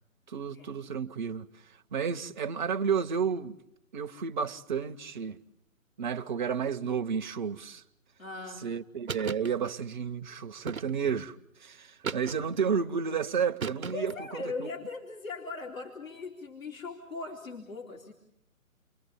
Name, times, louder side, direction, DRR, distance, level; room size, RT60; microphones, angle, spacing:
voice 1, 0.3-1.5 1.9-3.6 3.9-5.4 6.0-7.8 8.6-11.3 11.6-14.7, right 6 dB, 35° right, 1.0 m, -31 dB
voice 2, 8.2-8.7 13.9-18.1, left 3 dB, 70° left, 3.2 m, -39 dB
sound 1, 9.1-9.5 10.7-11.2 12.0-12.7 13.6-14.2, right 5 dB, 75° right, 1.1 m, -36 dB
29.0 x 22.5 x 7.0 m
figure-of-eight pair, 145°, 41 cm